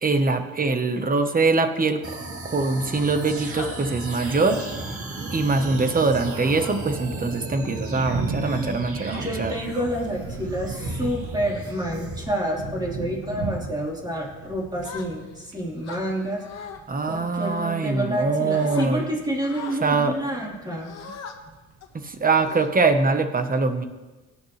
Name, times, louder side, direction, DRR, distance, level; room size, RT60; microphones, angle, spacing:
voice 1, 0.0-2.0 2.4-4.6 5.3-9.5 16.9-19.0 19.8-20.2 22.0-23.9, right 3 dB, 30° right, 8 dB, 1.3 m, -23 dB
sound 1, 2.0-12.3, right 2 dB, 50° right, 2.3 m, -35 dB
sound 2, 2.9-22.6, right 3 dB, 80° right, 1.8 m, -38 dB
sound 3, 3.6-3.8 4.3-4.7 5.2-5.5 6.6-7.0 7.6-7.9 8.7-9.2 10.1-10.3 10.8-11.1 11.6-11.9 12.4-12.7 13.2-13.5 14.8-15.4 15.8-16.8 17.4-18.2 18.5-18.9 19.4-19.8 20.8-21.3 21.8-22.0 22.4-23.1, left 7 dB, 60° left, 1.7 m, -41 dB
voice 2, 8.4-8.9 9.2-16.4 17.1-20.9, equal, 15° right, -3 dB, 4.3 m, -29 dB
18.0 x 10.5 x 3.4 m, 1.2 s
cardioid pair, 90°, 30 cm